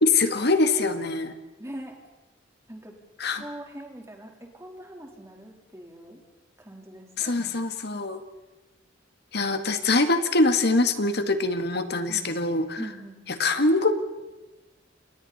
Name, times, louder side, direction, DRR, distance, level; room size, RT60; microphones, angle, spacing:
voice 1, 0.0-1.3 3.2-3.4 7.2-8.2 9.3-12.9 13.3-13.9, left 3 dB, 55° left, 8 dB, 1.8 m, -23 dB
voice 2, 1.6-2.0 2.7-3.0 3.3-6.2 6.6-7.5 12.1-12.3 12.8-13.2, right 1 dB, 15° right, 1 dB, 3.7 m, -42 dB
29.5 x 29.0 x 4.2 m, 1.1 s
head